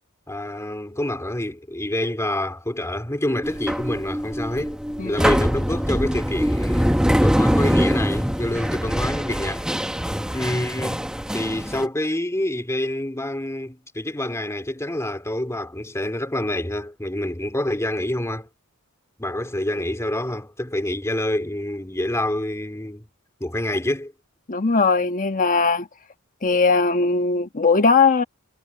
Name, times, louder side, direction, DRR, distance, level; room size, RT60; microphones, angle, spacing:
voice 1, 0.3-4.8 5.0-9.7 10.3-18.5 19.2-23.1 23.4-24.1, left 1 dB, 15° left, 2.5 m, -27 dB
sound 1, 3.4-11.9, equal, 5° right, 1.2 m, -23 dB
voice 2, 24.5-25.9 26.4-28.2, left 4 dB, 40° left, 1.3 m, -19 dB
head